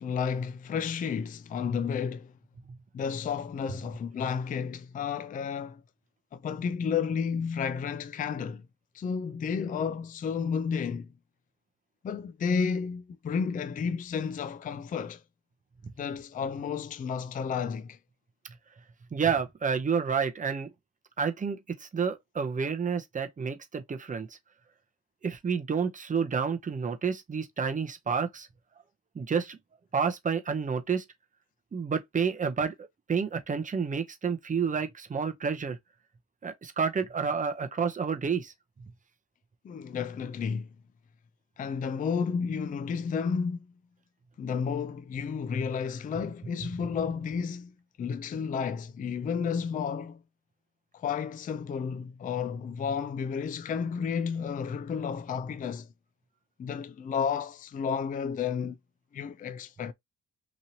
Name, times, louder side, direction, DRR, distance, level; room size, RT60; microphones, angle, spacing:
voice 1, 0.0-2.3 2.9-5.8 6.3-8.7 8.9-11.1 12.0-15.2 16.0-18.0 39.6-40.7 41.6-43.7 44.4-50.2 50.9-55.9 56.6-58.8 59.1-59.9, left 6 dB, 30° left, 0.4 m, -32 dB
voice 2, 19.1-20.7 21.2-24.4 25.2-28.5 29.1-29.6 29.9-31.0 31.7-35.8 36.4-38.5, right 6 dB, 25° right, 0.7 m, -30 dB
3.0 x 2.8 x 2.7 m
cardioid pair, 90°, 30 cm